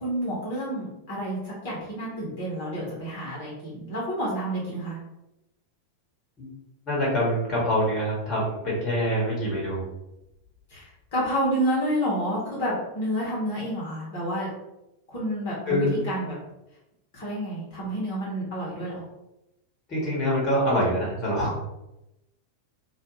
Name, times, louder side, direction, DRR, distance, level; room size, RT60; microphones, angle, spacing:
voice 1, 0.0-5.0 10.7-14.5 15.1-16.3 17.1-19.0, equal, 50° left, -6 dB, 0.9 m, -29 dB
voice 2, 6.9-9.8 15.7-16.0 19.9-21.6, equal, 30° left, -4 dB, 1.1 m, -25 dB
2.3 x 2.2 x 3.0 m, 0.91 s
figure-of-eight pair, 90°, 0 cm